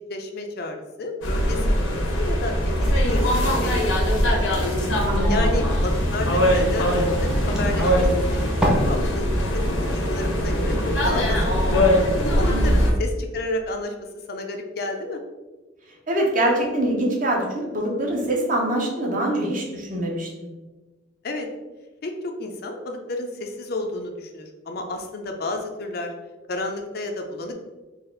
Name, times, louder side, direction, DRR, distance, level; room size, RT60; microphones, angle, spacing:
voice 1, 0.1-3.9 4.1-4.5 5.3-11.4 12.2-13.9 14.3-15.2 21.2-21.5 22.0-26.1 26.5-27.5, left 2 dB, 50° left, 4 dB, 0.5 m, -31 dB
sound 1, 1.2-12.9, equal, 90° left, 1.0 m, -21 dB
sound 2, 2.1-8.7, equal, 5° right, 0.7 m, -31 dB
sound 3, 2.9-12.6, right 1 dB, 85° right, 0.5 m, -40 dB
voice 2, 5.1-5.5 12.4-12.8 16.1-20.5, right 1 dB, 45° right, -1 dB, 0.9 m, -24 dB
4.1 x 2.5 x 3.8 m, 1.2 s
head